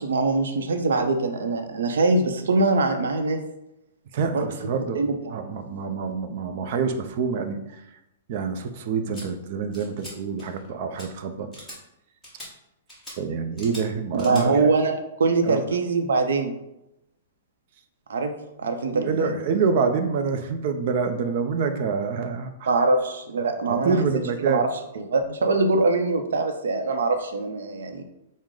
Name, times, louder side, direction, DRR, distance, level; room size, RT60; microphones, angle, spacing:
voice 1, 0.0-3.4 4.3-4.5 4.9-5.4 14.1-16.5 18.1-18.3 18.6-19.3 22.7-24.0 24.4-24.7 24.9-28.0, right 3 dB, 85° right, 5 dB, 0.6 m, -23 dB
voice 2, 4.1-5.0 5.3-7.8 8.3-11.5 13.2-14.6 15.5-15.6 18.9-22.7 23.7-24.7, right 5 dB, 45° right, 7 dB, 0.5 m, -26 dB
sound 1, 9.1-9.2 9.7-10.1 10.4-10.7 11.0-11.1 11.5-11.8 12.2-12.5 12.9-13.2 13.6-13.8 14.2-14.4, equal, ahead, 1.4 m, -41 dB
6.2 x 2.1 x 3.7 m, 0.88 s
hypercardioid pair, 160°, 0 cm